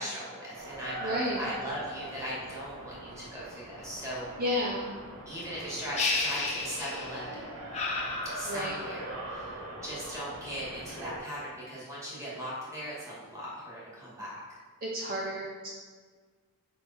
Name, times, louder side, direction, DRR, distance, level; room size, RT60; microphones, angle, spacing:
voice 1, 0.0-4.3 5.3-7.5 8.2-14.6, equal, 15° right, -7 dB, 2.0 m, -39 dB
sound 1, 0.5-11.2, right 1 dB, 75° right, 1.4 m, -42 dB
voice 2, 1.0-1.5 4.4-4.9 8.5-8.8 14.8-15.7, left 1 dB, 40° right, -3 dB, 0.7 m, -31 dB
sound 2, 6.0-7.3 7.7-9.0, left 3 dB, 30° left, 0.8 m, -32 dB
5.4 x 5.1 x 4.4 m, 1.5 s
head